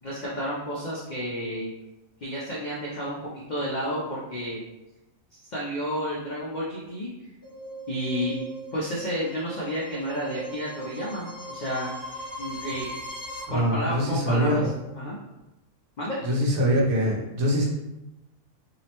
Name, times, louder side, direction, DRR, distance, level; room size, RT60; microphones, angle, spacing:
voice 1, 0.0-1.7 2.2-3.2 3.5-4.6 5.3-7.1 7.9-8.4 8.7-11.9 12.4-12.9 13.5-14.6 14.9-15.2 16.0-16.2, equal, 80° left, -6 dB, 0.4 m, -31 dB
sound 1, 7.4-13.4, equal, 25° left, 0.7 m, -39 dB
voice 2, 13.5-14.6 16.2-17.7, equal, 80° right, -2 dB, 1.1 m, -23 dB
2.9 x 2.0 x 2.8 m, 0.99 s
omnidirectional pair, 1.4 m